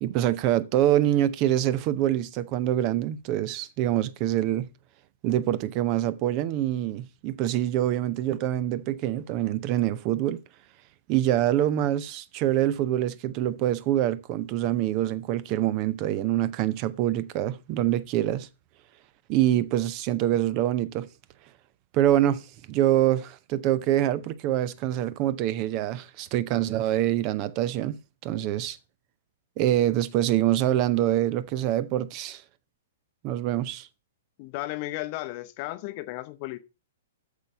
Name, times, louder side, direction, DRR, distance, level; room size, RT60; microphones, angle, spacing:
voice 1, 0.0-4.7 5.2-10.4 11.1-18.5 19.3-21.1 21.9-22.4 22.7-28.8 29.6-32.4 33.2-33.9, right 12 dB, 35° right, 0.6 m, -25 dB
voice 2, 34.4-36.6, left 17 dB, 35° left, 0.8 m, -34 dB
8.3 x 6.8 x 5.3 m
figure-of-eight pair, 110°, 0 cm